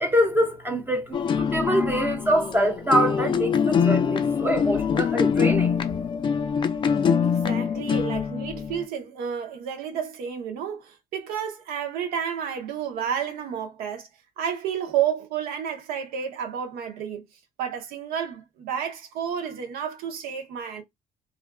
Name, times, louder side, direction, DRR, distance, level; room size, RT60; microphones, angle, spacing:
voice 1, 0.0-5.8, equal, 15° right, 0.6 m, -24 dB
sound 1, 1.1-8.8, left 6 dB, 35° left, 0.3 m, -24 dB
voice 2, 7.2-14.1 14.4-17.2 17.6-20.8, right 8 dB, 80° right, 0.8 m, -31 dB
2.5 x 2.2 x 2.2 m
supercardioid pair, 85°, 15 cm